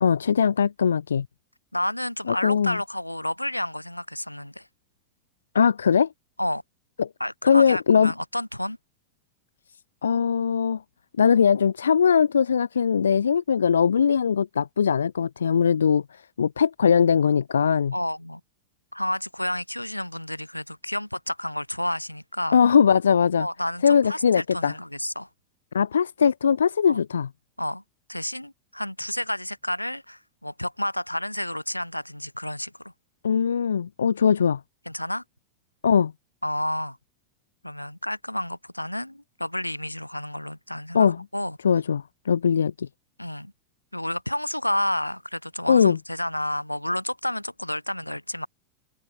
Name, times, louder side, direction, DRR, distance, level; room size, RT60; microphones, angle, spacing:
voice 1, 0.0-1.3 2.3-2.8 5.5-6.1 7.0-7.1 7.4-8.1 10.0-10.8 11.2-17.9 22.5-23.5 23.8-24.7 25.7-27.3 33.2-34.6 35.8-36.1 40.9-41.2 41.6-42.9 45.7-46.0, left 7 dB, 70° left, 0.8 m, -20 dB
voice 2, 1.7-4.7 6.4-6.6 7.2-8.8 17.9-18.4 18.9-22.6 23.4-25.3 26.9-27.0 27.6-27.8 28.1-32.8 34.9-35.2 36.4-37.0 37.6-41.6 43.2-43.5 43.9-48.5, left 1 dB, 90° left, 3.1 m, -30 dB
figure-of-eight pair, 90°, 0 cm